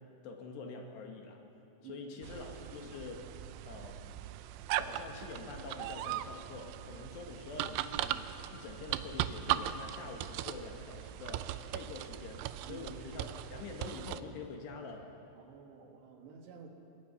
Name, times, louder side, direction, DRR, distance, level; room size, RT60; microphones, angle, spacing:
voice 1, 0.2-1.4 1.8-4.1 4.8-15.1, left 4 dB, 70° left, 2 dB, 3.6 m, -46 dB
voice 2, 1.8-2.4 12.7-12.9 15.4-16.7, right 7 dB, 70° right, 3 dB, 3.6 m, -52 dB
sound 1, 2.2-14.2, right 13 dB, 85° right, 3.0 m, -39 dB
27.0 x 21.0 x 5.6 m, 2.9 s
omnidirectional pair, 5.4 m